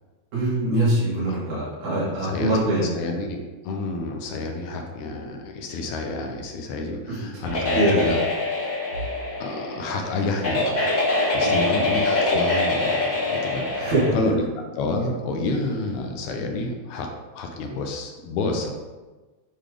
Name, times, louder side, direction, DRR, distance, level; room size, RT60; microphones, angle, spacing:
voice 1, 0.3-2.9 7.1-7.5 7.7-8.1 11.4-11.8 13.8-14.2, right 1 dB, 80° right, -8 dB, 3.7 m, -23 dB
voice 2, 1.3-1.7 2.2-2.6 3.0-3.4 3.6-8.2 9.4-11.0 11.3-17.1 17.3-18.7, left 2 dB, 80° left, 3 dB, 2.2 m, -29 dB
sound 1, 7.4-14.1, left 2 dB, 35° left, 1.4 m, -24 dB
8.6 x 3.3 x 3.8 m, 1.2 s
omnidirectional pair, 3.3 m